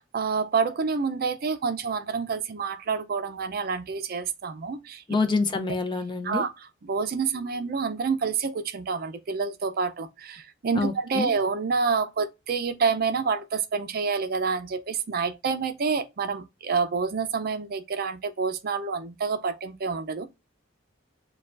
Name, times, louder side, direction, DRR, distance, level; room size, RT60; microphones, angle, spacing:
voice 1, 0.0-5.0 6.2-6.5 6.8-20.3, right 5 dB, 50° right, 0.5 m, -28 dB
voice 2, 5.1-6.4 10.7-11.3, left 3 dB, 25° left, 0.5 m, -26 dB
6.5 x 2.3 x 2.4 m
head